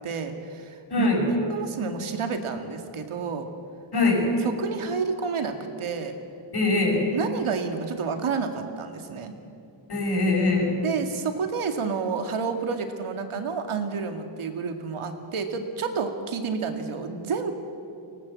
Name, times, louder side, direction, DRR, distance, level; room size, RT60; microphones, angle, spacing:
voice 1, 0.0-3.5 4.4-6.1 7.1-9.3 10.8-17.5, right 5 dB, 80° right, 6 dB, 2.3 m, -30 dB
voice 2, 3.9-4.2 6.5-7.1 9.9-10.8, left 3 dB, 50° left, 0 dB, 6.2 m, -22 dB
23.0 x 18.0 x 7.6 m, 2.6 s
cardioid pair, 90°, 50 cm